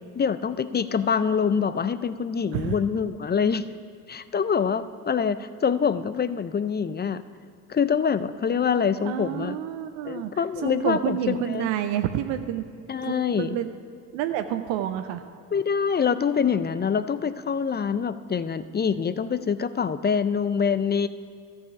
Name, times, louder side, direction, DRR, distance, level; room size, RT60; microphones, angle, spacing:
voice 1, 0.2-3.6 4.1-7.2 7.7-9.6 10.0-11.7 12.9-13.6 15.5-21.1, left 6 dB, 25° left, 14 dB, 0.4 m, -25 dB
voice 2, 9.0-12.6 13.0-13.7 14.1-15.2, right 11 dB, 75° right, 8 dB, 0.6 m, -29 dB
13.0 x 4.9 x 6.8 m, 2.4 s
hypercardioid pair, 50°, 44 cm